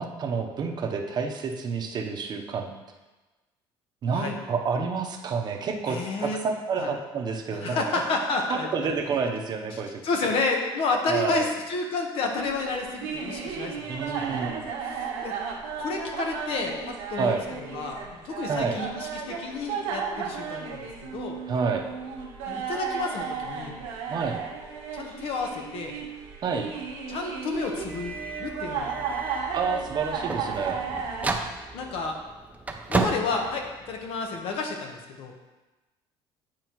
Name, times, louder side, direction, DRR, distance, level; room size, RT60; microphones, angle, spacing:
voice 1, 0.0-2.7 4.0-7.8 8.5-10.0 11.1-11.5 13.9-14.6 17.2-17.4 18.5-18.8 21.5-21.8 24.1-24.4 26.4-26.7 29.5-30.8, right 5 dB, 45° right, 3 dB, 0.8 m, -29 dB
voice 2, 5.9-6.4 6.8-6.9 7.6-8.7 9.7-14.1 14.9-15.4 15.8-21.4 22.5-23.8 24.9-26.0 27.1-28.9 31.7-32.2 32.9-35.3, left 3 dB, 65° left, 3 dB, 1.1 m, -30 dB
sound 1, 12.4-31.3, right 6 dB, 90° right, 1.3 m, -34 dB
sound 2, 27.8-34.3, right 3 dB, 15° right, 0.5 m, -33 dB
9.0 x 4.7 x 3.1 m, 1.2 s
cardioid pair, 115°, 10 cm